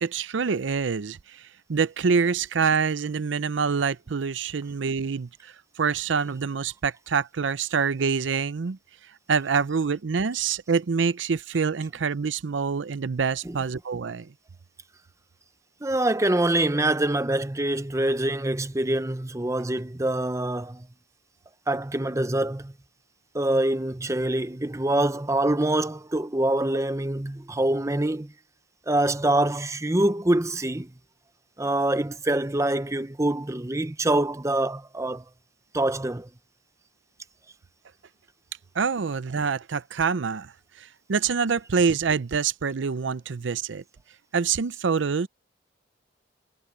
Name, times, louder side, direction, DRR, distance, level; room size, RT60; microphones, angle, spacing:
voice 1, 0.0-8.8 9.3-14.3 38.7-43.8 44.3-45.3, right 5 dB, 80° right, 0.6 m, -26 dB
voice 2, 15.8-20.9 21.7-22.7 23.3-28.3 28.9-30.9 31.6-35.2 35.7-36.3, right 1 dB, 15° right, 0.7 m, -25 dB
head